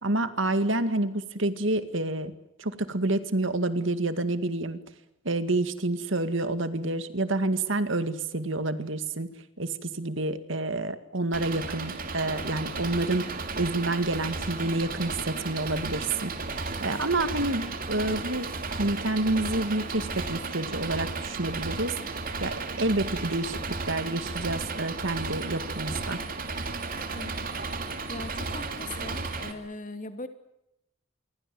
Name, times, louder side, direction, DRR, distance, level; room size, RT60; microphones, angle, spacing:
voice 1, 0.0-2.3 2.6-4.8 5.2-9.3 9.6-16.3 16.6-21.9 22.4-26.2, right 2 dB, 65° right, 10 dB, 2.1 m, -28 dB
Engine, 11.3-29.5, right 3 dB, 45° right, 2.9 m, -34 dB
voice 2, 27.1-27.5 28.1-30.3, left 2 dB, 40° left, 8 dB, 2.8 m, -40 dB
27.5 x 24.0 x 7.9 m, 0.85 s
head